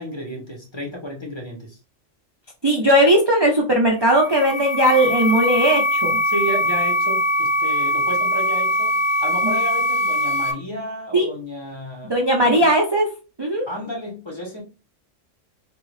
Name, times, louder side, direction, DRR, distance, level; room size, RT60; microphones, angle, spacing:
voice 1, 0.0-1.8 2.8-2.9 6.2-12.7 13.6-14.6, right 1 dB, 25° left, -1 dB, 0.9 m, -32 dB
voice 2, 2.6-6.2 9.4-9.5 11.1-11.3 12.0-13.1 13.4-13.6, right 1 dB, 40° right, 0 dB, 0.3 m, -18 dB
sound 1, 4.0-10.5, equal, 60° left, 0.8 m, -21 dB
3.6 x 2.3 x 3.1 m, 0.32 s
omnidirectional pair, 1.3 m